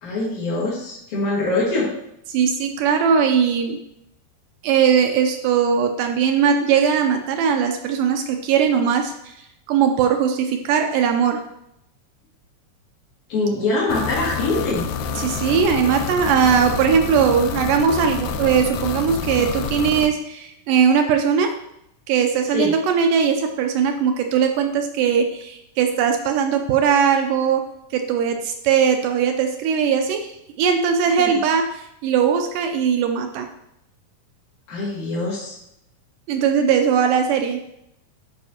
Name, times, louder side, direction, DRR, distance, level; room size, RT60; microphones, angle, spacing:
voice 1, 0.0-1.9 13.3-14.9 22.5-22.7 31.2-31.3 34.7-35.6, left 2 dB, 60° left, -7 dB, 3.6 m, -23 dB
voice 2, 2.3-3.8 4.6-11.4 15.2-21.6 22.1-33.5 36.3-37.6, right 7 dB, 80° right, 5 dB, 2.1 m, -20 dB
sound 1, 13.9-20.1, left 5 dB, 80° left, 2.0 m, -28 dB
12.0 x 5.0 x 2.9 m, 0.80 s
omnidirectional pair, 4.0 m